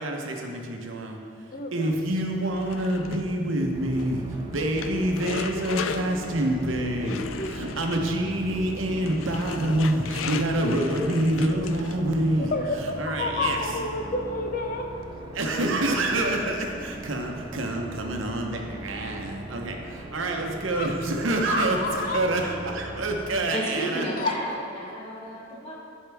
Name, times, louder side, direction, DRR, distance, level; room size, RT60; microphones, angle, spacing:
voice 1, 0.0-12.5 12.8-13.7 15.3-24.1, right 1 dB, 85° right, 2 dB, 0.9 m, -27 dB
voice 2, 1.5-1.9 3.9-4.0 7.0-7.5 12.5-14.9 20.8-20.9 21.5-22.3 24.2-24.3, left 3 dB, 50° left, 4 dB, 0.7 m, -29 dB
sound 1, 2.5-12.2, left 6 dB, 80° left, 0.4 m, -37 dB
sound 2, 3.7-23.4, right 2 dB, 25° right, 0.5 m, -40 dB
sound 3, 6.1-14.3, right 3 dB, 65° right, 0.6 m, -45 dB
voice 3, 23.5-25.7, right 1 dB, 30° left, -5 dB, 1.7 m, -33 dB
10.0 x 5.5 x 3.5 m, 2.3 s
head